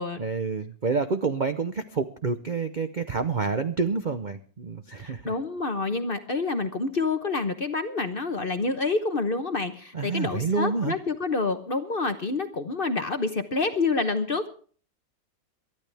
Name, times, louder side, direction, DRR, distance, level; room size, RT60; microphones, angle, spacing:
voice 1, 0.2-5.3 9.9-10.9, right 4 dB, 70° right, 9 dB, 0.4 m, -28 dB
voice 2, 5.0-14.5, left 3 dB, 40° left, 8 dB, 0.9 m, -28 dB
22.5 x 12.5 x 3.4 m, 0.44 s
omnidirectional pair, 2.0 m